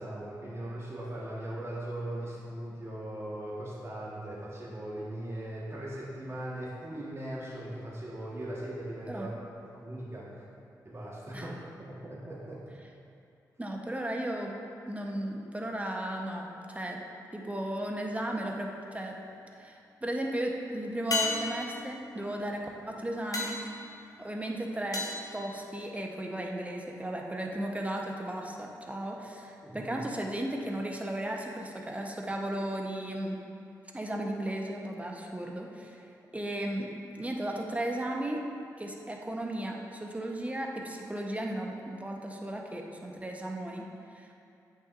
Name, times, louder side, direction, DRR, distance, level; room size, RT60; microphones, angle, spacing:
voice 1, 0.0-9.3 9.6-10.3 10.8-12.6 29.6-30.0, right 1 dB, 35° right, -6 dB, 1.6 m, -39 dB
voice 2, 13.6-14.6 14.9-17.0 17.3-19.2 19.5-23.6 24.2-33.4 33.9-36.1 36.3-38.4 38.8-44.3, right 1 dB, 15° right, 0 dB, 1.0 m, -35 dB
sound 1, 18.8-19.4 21.1-26.3 30.7-30.8, left 2 dB, 50° left, 1.1 m, -37 dB
8.4 x 6.1 x 2.6 m, 2.5 s
supercardioid pair, 45°, 8 cm